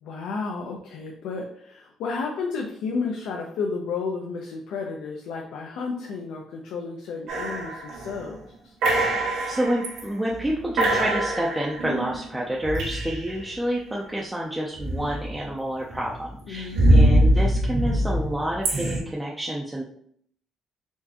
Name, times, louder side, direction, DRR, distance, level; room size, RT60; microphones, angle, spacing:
voice 1, 0.0-8.8 16.5-17.2, left 4 dB, 75° left, 0 dB, 0.6 m, -32 dB
sound 1, 7.3-8.3 8.8-10.0 10.4-10.5 10.8-13.5 14.8-15.5 15.9-19.0, right 1 dB, 80° right, 1.6 m, -23 dB
voice 2, 9.5-19.8, equal, 5° right, -3 dB, 0.4 m, -29 dB
4.5 x 3.3 x 2.8 m, 0.65 s
cardioid pair, 165°, 0 cm